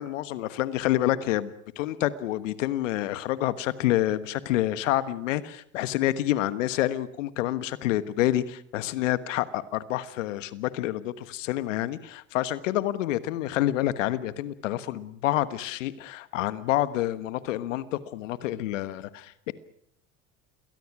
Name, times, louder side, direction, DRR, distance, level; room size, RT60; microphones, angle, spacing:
voice 1, 0.0-19.5, left 14 dB, 85° left, 14 dB, 1.4 m, -28 dB
28.0 x 21.5 x 6.1 m, 0.66 s
hypercardioid pair, 80°, 37 cm